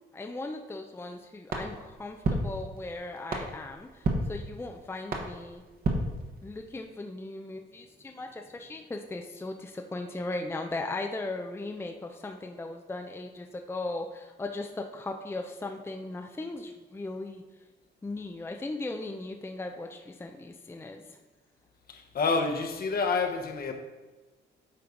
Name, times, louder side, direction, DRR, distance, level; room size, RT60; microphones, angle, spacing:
voice 1, 0.1-5.6 6.4-17.4 18.0-21.2, left 2 dB, 10° left, 0.5 m, -38 dB
sound 1, 1.5-6.8, right 2 dB, 50° right, 1.3 m, -34 dB
voice 2, 21.9-23.7, left 4 dB, 50° left, 1.0 m, -28 dB
8.5 x 4.5 x 3.8 m
cardioid pair, 90°, 20 cm